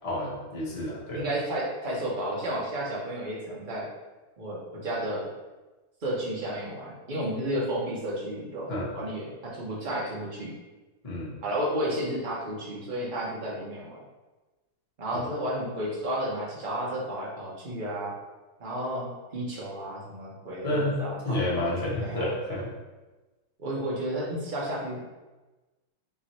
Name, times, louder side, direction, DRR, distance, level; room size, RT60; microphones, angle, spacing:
voice 1, 0.0-1.2 8.7-8.9 11.0-11.3 15.1-15.2 20.6-22.7, left 1 dB, 25° left, -7 dB, 0.8 m, -30 dB
voice 2, 1.1-3.9 4.4-5.3 6.0-10.5 11.4-14.0 15.0-18.1 18.6-21.4 22.0-22.3 23.6-25.1, right 1 dB, 60° right, -5 dB, 0.5 m, -32 dB
3.7 x 3.1 x 4.3 m, 1.2 s
omnidirectional pair, 2.4 m